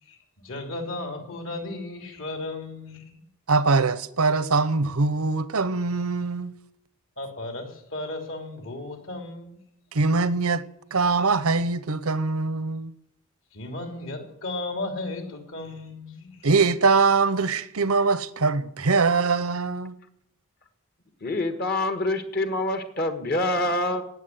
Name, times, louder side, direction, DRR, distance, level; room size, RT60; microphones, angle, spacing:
voice 1, 0.0-3.3 7.2-9.6 13.5-16.5, left 2 dB, 60° left, 3.3 m, -35 dB
voice 2, 3.5-6.5 9.9-10.6 10.9-12.9 16.4-19.9, right 4 dB, 80° right, 0.9 m, -22 dB
voice 3, 21.2-24.0, left 1 dB, 45° left, 1.4 m, -26 dB
18.0 x 7.2 x 9.4 m
head